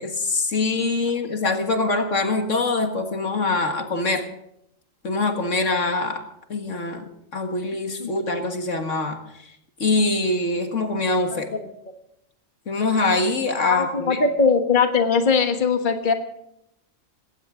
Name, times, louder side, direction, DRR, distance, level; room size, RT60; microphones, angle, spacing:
voice 1, 0.0-4.3 5.0-9.2 9.8-11.5 12.7-14.2, left 3 dB, 70° left, 5 dB, 2.1 m, -24 dB
voice 2, 11.3-11.7 13.7-16.1, left 5 dB, 40° left, 6 dB, 1.5 m, -21 dB
20.0 x 17.5 x 3.8 m, 0.77 s
omnidirectional pair, 1.4 m